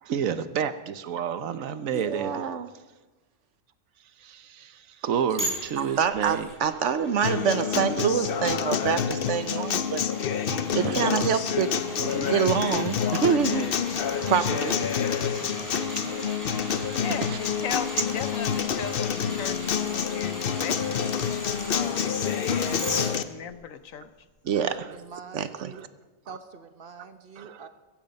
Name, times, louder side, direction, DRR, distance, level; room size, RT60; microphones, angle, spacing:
voice 1, 0.0-2.4 4.2-4.7 5.0-6.5 10.5-11.0 12.2-12.3 14.2-14.3 15.6-17.4 22.5-23.2 24.6-24.7 27.4-27.7, right 8 dB, 90° right, 12 dB, 1.2 m, -32 dB
voice 2, 1.9-2.7 5.8-10.0 10.7-13.7 14.3-14.8 24.4-24.7 25.3-25.7, right 7 dB, 70° right, 11 dB, 1.1 m, -26 dB
sound 1, 5.4-23.1 23.5-23.6, equal, 15° right, 6.0 m, -40 dB
Acoustic guitar, 7.2-23.2, left 8 dB, 55° left, 0.8 m, -28 dB
voice 3, 16.9-21.1 21.7-22.4 22.7-24.1, left 8 dB, 85° left, 12 dB, 1.3 m, -37 dB
voice 4, 24.9-25.8 26.3-27.7, right 5 dB, 45° right, 8 dB, 1.3 m, -45 dB
16.0 x 15.0 x 5.3 m, 1.2 s
omnidirectional pair, 1.3 m